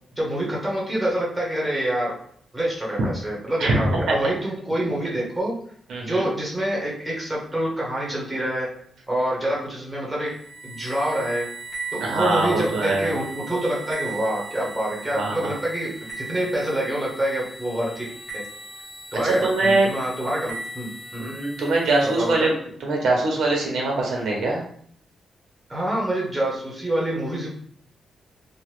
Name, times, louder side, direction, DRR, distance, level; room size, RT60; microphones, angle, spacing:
voice 1, 0.2-2.1 2.5-5.5 6.0-8.7 9.1-10.3 10.6-11.5 11.9-18.1 18.3-18.4 19.1-21.4 22.2-22.5 25.7-27.5, right 1 dB, 5° right, -4 dB, 0.8 m, -26 dB
voice 2, 3.6-4.2 5.9-6.2 12.0-13.1 15.1-15.5 19.2-19.9 21.2-22.5 22.8-24.6, right 2 dB, 75° right, -1 dB, 0.7 m, -22 dB
sound 1, 10.3-22.4, right 3 dB, 35° left, 1.1 m, -38 dB
2.9 x 2.2 x 3.2 m, 0.62 s
wide cardioid pair, 160°, 0 cm